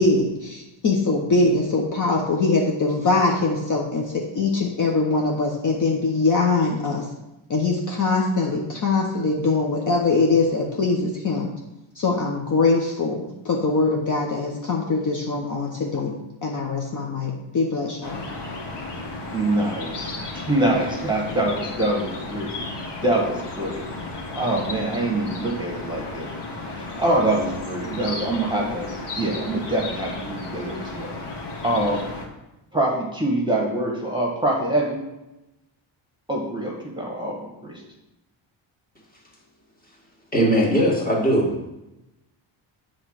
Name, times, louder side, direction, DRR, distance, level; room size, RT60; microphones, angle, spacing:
voice 1, 0.0-7.1 7.5-11.5 11.9-16.1 16.4-18.3, left 3 dB, 40° left, -1 dB, 1.0 m, -22 dB
sound 1, 18.0-32.3, left 2 dB, 55° left, 1.8 m, -34 dB
voice 2, 19.3-23.9 24.3-26.3 26.8-31.1 31.6-32.0 32.7-35.0 36.3-37.8, right 1 dB, 10° right, -2 dB, 1.4 m, -25 dB
voice 3, 40.3-41.7, equal, 15° left, -2 dB, 2.0 m, -20 dB
8.0 x 3.8 x 6.5 m, 0.95 s
cardioid pair, 145°, 49 cm